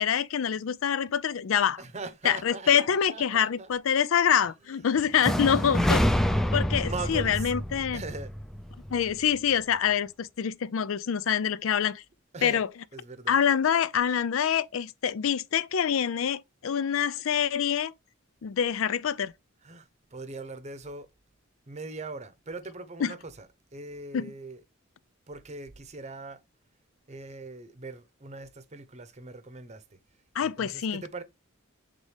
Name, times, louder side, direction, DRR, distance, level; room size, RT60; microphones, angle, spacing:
voice 1, 0.0-1.8 2.2-6.0 6.5-8.0 8.9-12.0 12.4-12.7 13.3-17.9 18.4-19.3 23.0-23.1 24.1-24.3 30.4-31.0, left 8 dB, 70° left, 0.4 m, -26 dB
voice 2, 1.8-3.7 4.5-4.9 5.2-6.5 6.7-7.6 7.9-8.3 12.3-12.7 12.9-13.4 19.6-21.1 21.7-24.6 25.3-26.4 27.1-30.0 30.4-31.2, right 3 dB, 35° right, 0.8 m, -41 dB
sound 1, 5.2-9.1, equal, ahead, 0.4 m, -27 dB
8.0 x 3.7 x 3.4 m
head